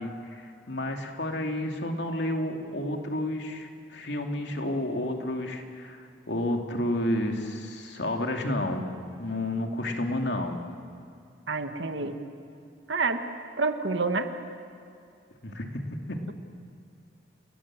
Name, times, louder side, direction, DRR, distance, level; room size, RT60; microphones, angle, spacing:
voice 1, 0.0-8.8 9.2-10.6 15.4-15.8 16.1-16.3, left 1 dB, 65° left, 3 dB, 2.6 m, -31 dB
voice 2, 11.5-12.2 12.9-13.2 13.6-14.3, right 4 dB, 80° right, 7 dB, 1.7 m, -27 dB
30.0 x 19.0 x 7.5 m, 2.4 s
head